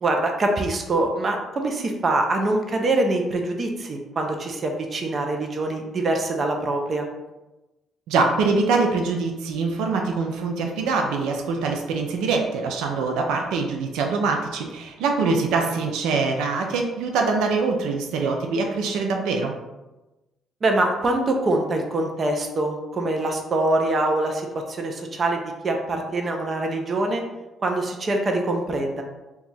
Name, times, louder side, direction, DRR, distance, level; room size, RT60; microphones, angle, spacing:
voice 1, 0.0-7.1 15.2-15.7 20.6-27.2 27.6-29.0, right 2 dB, 40° right, 3 dB, 0.5 m, -24 dB
voice 2, 8.1-19.5, right 4 dB, 90° right, 2 dB, 0.4 m, -24 dB
2.8 x 2.3 x 4.0 m, 1.0 s
cardioid pair, 100°, 0 cm